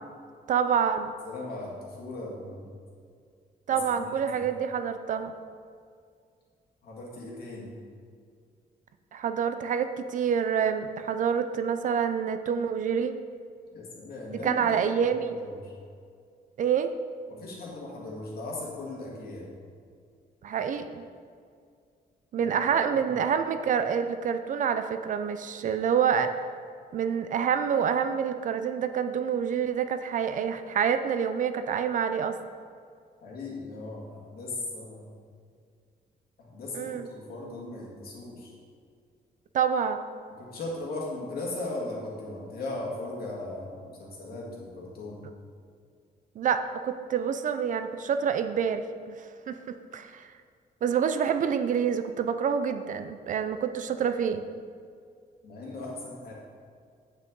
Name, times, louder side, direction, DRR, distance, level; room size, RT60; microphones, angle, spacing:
voice 1, 0.5-1.1 3.7-5.3 9.1-13.2 14.3-15.4 16.6-16.9 20.4-21.0 22.3-26.3 26.9-32.4 36.7-37.1 39.5-40.0 46.4-49.1 49.5-49.6 49.9-50.3 50.8-54.4, right 7 dB, 50° right, 9 dB, 0.4 m, -27 dB
voice 2, 1.2-2.7 4.0-4.4 6.8-7.7 13.7-15.7 17.3-19.5 22.3-22.5 22.9-23.2 33.2-35.1 36.4-38.5 40.3-45.2 55.4-56.3, left 2 dB, 65° left, -3 dB, 2.1 m, -38 dB
8.2 x 7.5 x 3.9 m, 2.2 s
wide cardioid pair, 175°, 17 cm